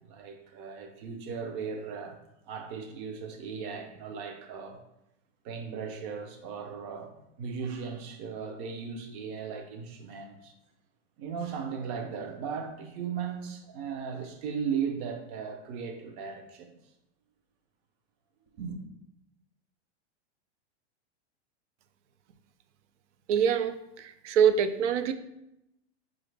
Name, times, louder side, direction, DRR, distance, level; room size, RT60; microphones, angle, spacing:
voice 1, 0.0-2.2 2.5-4.8 5.4-10.5 11.2-16.7 18.6-18.8, right 6 dB, 30° right, 0.5 m, -37 dB
voice 2, 23.3-25.1, right 7 dB, 85° right, 0.5 m, -25 dB
4.9 x 2.5 x 3.2 m
supercardioid pair, 145°, 35 cm